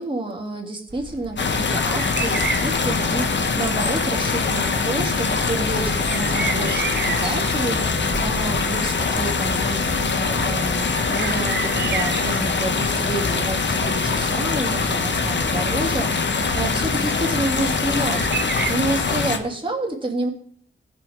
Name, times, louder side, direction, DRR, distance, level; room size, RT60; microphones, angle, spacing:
voice 1, 0.0-20.3, right 2 dB, 25° right, 1 dB, 2.9 m, -29 dB
sound 1, 0.9-18.8, right 5 dB, 55° right, 1.2 m, -33 dB
sound 2, 1.4-19.4, left 4 dB, 60° left, 1.3 m, -23 dB
19.5 x 6.7 x 3.7 m, 0.62 s
wide cardioid pair, 110°, 21 cm